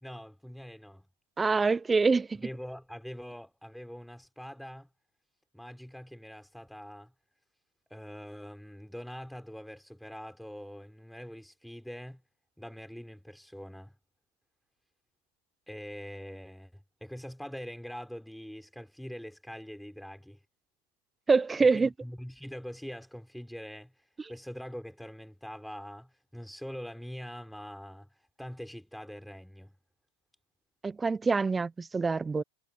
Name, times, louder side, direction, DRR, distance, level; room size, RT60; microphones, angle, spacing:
voice 1, 0.0-1.1 2.4-4.9 5.5-7.1 7.9-12.2 12.6-13.9 15.7-20.4 21.6-23.9 24.3-28.1 28.4-29.7, equal, ahead, 4.5 m, -43 dB
voice 2, 1.4-2.5 21.3-21.9 30.8-32.4, right 4 dB, 15° right, 0.9 m, -25 dB
hypercardioid pair, 100°, 0 cm